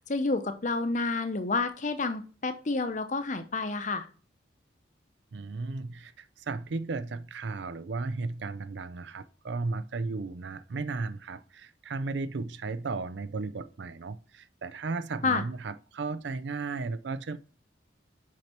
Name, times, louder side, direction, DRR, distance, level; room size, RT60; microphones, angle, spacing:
voice 1, 0.1-4.1 15.2-15.4, left 3 dB, 40° left, 0.7 m, -29 dB
voice 2, 5.3-17.4, right 3 dB, 65° right, 0.5 m, -35 dB
6.2 x 5.7 x 4.4 m
head